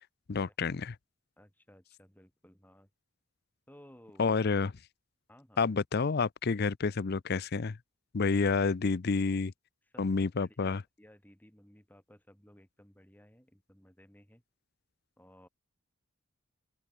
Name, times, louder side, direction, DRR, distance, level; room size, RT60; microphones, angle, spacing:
voice 1, 0.3-0.9 4.2-4.7 5.6-7.8 8.1-9.5 10.0-10.8, left 4 dB, 50° left, 0.5 m, -29 dB
voice 2, 1.4-2.9 3.7-4.4 5.3-5.7 9.9-14.4 15.2-15.5, equal, 10° left, 4.5 m, -58 dB
open air
head